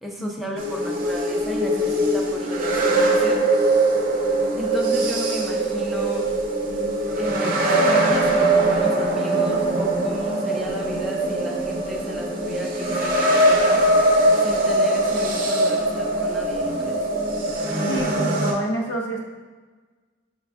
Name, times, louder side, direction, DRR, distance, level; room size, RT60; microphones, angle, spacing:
voice 1, 0.0-3.4 4.6-6.3 7.2-13.9 14.4-17.0, equal, ahead, -2 dB, 0.5 m, -33 dB
sound 1, 0.6-18.5, right 1 dB, 50° right, 0.6 m, -21 dB
voice 2, 17.9-19.2, equal, 90° left, -1 dB, 0.7 m, -28 dB
5.6 x 3.4 x 2.4 m, 1.4 s
head